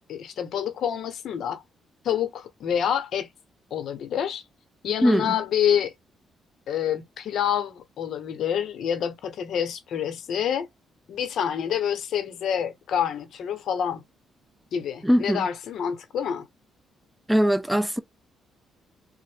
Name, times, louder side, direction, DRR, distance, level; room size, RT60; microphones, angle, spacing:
voice 1, 0.1-1.6 2.0-3.3 3.7-4.4 4.8-5.9 6.7-10.7 11.1-14.0 14.7-16.5, left 9 dB, 70° left, 0.7 m, -27 dB
voice 2, 5.0-5.3 15.0-15.5 17.3-18.0, equal, 5° right, 0.5 m, -21 dB
3.4 x 2.1 x 3.3 m
cardioid pair, 90°, 0 cm